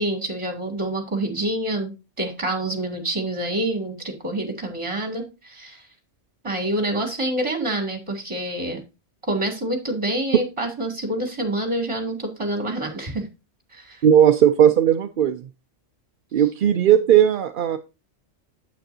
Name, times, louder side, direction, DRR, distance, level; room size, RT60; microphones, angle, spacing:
voice 1, 0.0-5.8 6.4-8.8 9.2-13.3 13.7-14.0, right 1 dB, 25° right, 2.4 m, -27 dB
voice 2, 14.0-15.4 16.3-17.8, right 10 dB, 55° right, 0.6 m, -16 dB
9.0 x 8.3 x 2.7 m
omnidirectional pair, 1.3 m